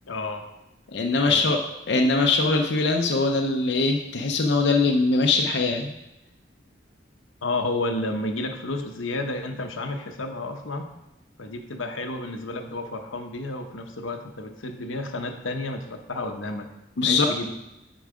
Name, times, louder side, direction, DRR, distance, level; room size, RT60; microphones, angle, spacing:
voice 1, 0.1-0.4 1.1-1.4 7.4-10.9 11.4-16.7 17.0-17.5, left 2 dB, 85° left, 5 dB, 0.9 m, -31 dB
voice 2, 0.9-1.6 1.9-5.9 17.0-17.3, left 3 dB, 60° left, 1 dB, 0.6 m, -22 dB
9.2 x 4.7 x 4.9 m, 0.93 s
head